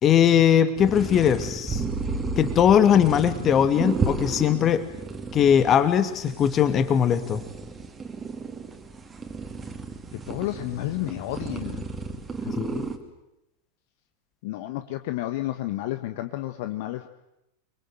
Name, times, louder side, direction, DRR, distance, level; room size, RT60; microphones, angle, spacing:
voice 1, 0.0-1.8 2.4-4.8 5.3-7.4 12.6-12.9, left 9 dB, 30° left, 10 dB, 2.5 m, -20 dB
sound 1, 0.8-13.0, right 4 dB, 15° right, 3.0 m, -33 dB
voice 2, 10.3-11.8 12.4-12.5 14.4-17.1, left 15 dB, 50° left, 9 dB, 1.3 m, -31 dB
29.5 x 23.5 x 8.0 m, 0.90 s
figure-of-eight pair, 90°, 0 cm